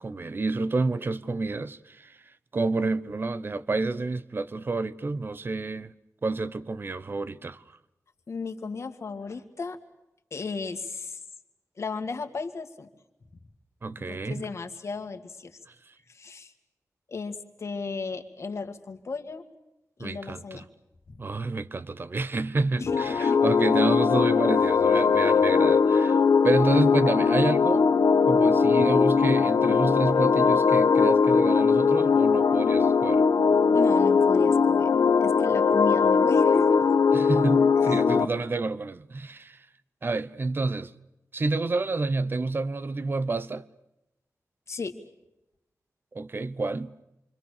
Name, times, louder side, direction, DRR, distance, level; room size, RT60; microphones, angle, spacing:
voice 1, 0.0-2.2 2.5-5.9 6.2-7.6 13.8-14.5 20.0-20.6 21.2-26.2 26.4-27.8 28.3-33.2 37.1-39.6 40.0-40.9 41.3-43.6 46.1-46.9, right 3 dB, 35° right, 0.9 m, -29 dB
voice 2, 8.3-9.8 10.3-11.2 11.8-12.9 14.0-15.6 16.1-16.5 17.1-19.4 20.0-20.7 21.1-21.2 22.8-23.4 33.7-36.9 37.8-38.0 44.7-45.0, left 4 dB, 50° left, 2.1 m, -35 dB
sound 1, 22.9-38.2, left 5 dB, 80° left, 1.2 m, -20 dB
28.0 x 25.0 x 6.7 m
wide cardioid pair, 155°, 6 cm